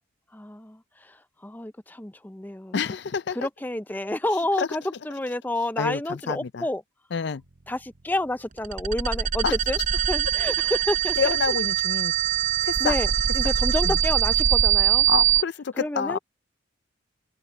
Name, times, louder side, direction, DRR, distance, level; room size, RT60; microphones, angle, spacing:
voice 1, 0.3-2.7 3.3-6.8 7.7-11.6 12.6-15.1 15.7-16.2, left 1 dB, 10° left, 0.5 m, -30 dB
voice 2, 2.7-3.4 4.6-4.7 5.8-6.0 6.3-6.6 7.1-7.4 9.4-9.5 11.2-12.1 12.6-12.9 13.8-13.9 15.1-16.2, left 6 dB, 55° left, 0.4 m, -27 dB
sound 1, 8.6-15.4, right 10 dB, 40° right, 0.7 m, -23 dB
head